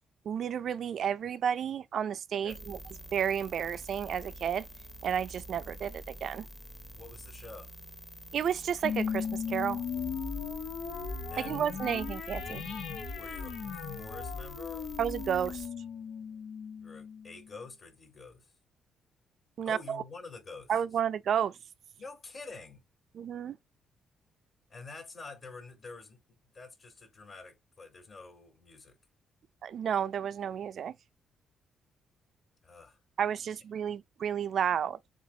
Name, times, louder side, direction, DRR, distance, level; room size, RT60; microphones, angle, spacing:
voice 1, 0.3-2.8 3.1-4.7 5.0-6.5 8.3-9.8 11.4-12.7 15.0-15.6 19.6-20.0 20.7-21.5 23.2-23.6 29.6-30.9 33.2-35.0, right 8 dB, 60° right, 0.5 m, -31 dB
sound 1, 2.5-15.7, right 1 dB, 5° left, 0.9 m, -47 dB
voice 2, 6.9-7.7 11.3-12.0 13.1-14.9 16.8-18.5 19.6-20.8 22.0-22.8 24.7-29.0 32.6-33.0, left 3 dB, 45° left, 3.8 m, -48 dB
sound 2, 8.8-17.6, left 6 dB, 75° left, 1.2 m, -37 dB
7.3 x 2.5 x 2.8 m
cardioid pair, 90°, 0 cm